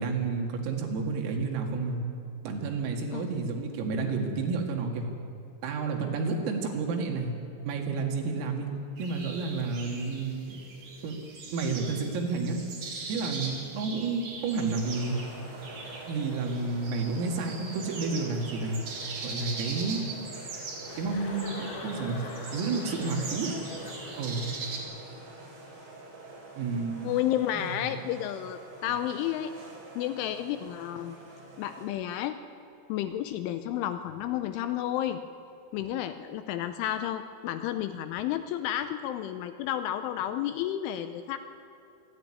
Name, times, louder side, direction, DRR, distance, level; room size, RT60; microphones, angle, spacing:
voice 1, 0.0-2.1 2.4-5.1 5.6-7.3 7.7-8.7 9.0-10.6 11.0-11.2 11.5-12.6 13.1-15.2 16.1-18.8 19.2-20.1 21.0-22.2 22.5-23.6 24.2-24.5 26.6-27.1 27.5-27.7, right 4 dB, 80° right, 2 dB, 4.7 m, -30 dB
sound 1, 9.0-24.8, right 4 dB, 40° right, 3.4 m, -41 dB
sound 2, 14.5-31.9, right 2 dB, 60° right, 6.8 m, -46 dB
Chuckle chortle, 20.9-24.6, left 4 dB, 60° left, 2.3 m, -43 dB
voice 2, 27.0-29.5 30.0-31.2 31.6-32.4 32.9-35.2 35.7-41.4, left 11 dB, 80° left, 9 dB, 2.9 m, -31 dB
26.5 x 10.0 x 9.9 m, 2.7 s
omnidirectional pair, 6.0 m